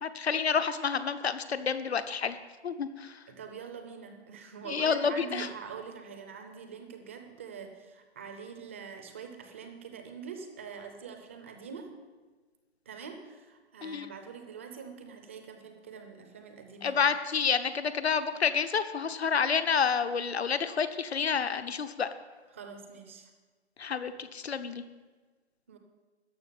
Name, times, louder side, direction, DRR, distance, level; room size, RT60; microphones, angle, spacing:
voice 1, 0.0-2.4 2.6-3.1 4.7-5.5 13.8-14.1 16.8-22.1 23.8-24.8, left 6 dB, 70° left, 11 dB, 1.2 m, -29 dB
voice 2, 3.3-11.9 12.9-17.0 22.5-23.3 25.7-25.8, right 6 dB, 10° right, 5 dB, 0.6 m, -44 dB
13.5 x 6.1 x 9.3 m, 1.3 s
hypercardioid pair, 155°, 33 cm